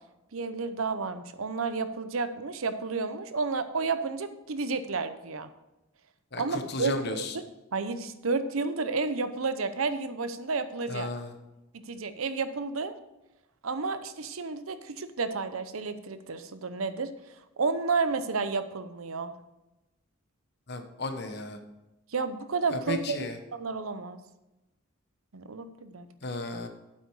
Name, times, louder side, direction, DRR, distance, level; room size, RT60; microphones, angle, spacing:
voice 1, 0.3-5.5 6.3-7.4 7.7-11.1 11.7-12.9 13.6-17.1 17.6-19.3 22.1-23.2 23.5-24.2 25.3-26.1, right 4 dB, 85° right, 11 dB, 0.8 m, -31 dB
voice 2, 6.3-7.3 10.9-11.3 20.7-21.6 22.7-23.4 26.2-26.7, left 2 dB, 50° left, 7 dB, 1.1 m, -34 dB
8.7 x 8.1 x 4.8 m, 0.98 s
head